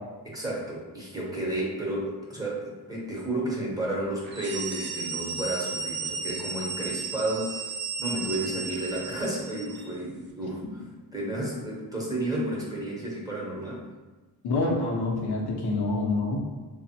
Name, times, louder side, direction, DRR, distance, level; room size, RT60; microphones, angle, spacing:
voice 1, 0.2-7.7 8.0-10.7 11.1-13.9, right 1 dB, 10° right, -4 dB, 0.8 m, -32 dB
sound 1, 4.2-9.9, right 4 dB, 30° right, 0.4 m, -34 dB
voice 2, 14.4-16.4, left 2 dB, 75° left, -1 dB, 0.7 m, -27 dB
3.2 x 2.0 x 2.7 m, 1.2 s
cardioid pair, 95°, 39 cm